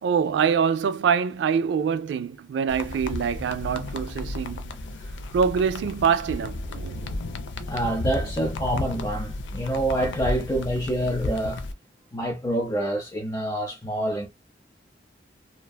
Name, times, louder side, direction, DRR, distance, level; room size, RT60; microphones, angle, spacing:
voice 1, 0.0-4.8 5.3-7.1, right 7 dB, 75° right, 0.3 m, -25 dB
sound 1, 2.7-11.7, left 2 dB, 85° left, 0.4 m, -33 dB
voice 2, 7.7-11.6 12.1-14.3, right 1 dB, 20° left, 0.5 m, -27 dB
2.5 x 2.2 x 2.2 m
head